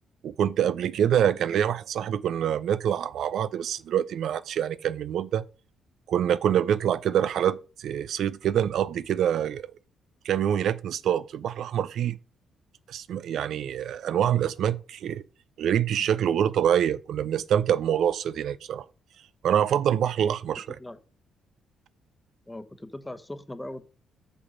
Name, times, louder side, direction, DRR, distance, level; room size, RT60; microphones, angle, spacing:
voice 1, 0.2-5.5 6.1-9.7 10.2-12.2 12.9-15.2 15.6-18.8 19.4-20.8, right 9 dB, 70° right, 0.4 m, -25 dB
voice 2, 22.5-23.8, left 1 dB, 10° left, 1.0 m, -39 dB
6.6 x 6.1 x 5.2 m
cardioid pair, 90°, 0 cm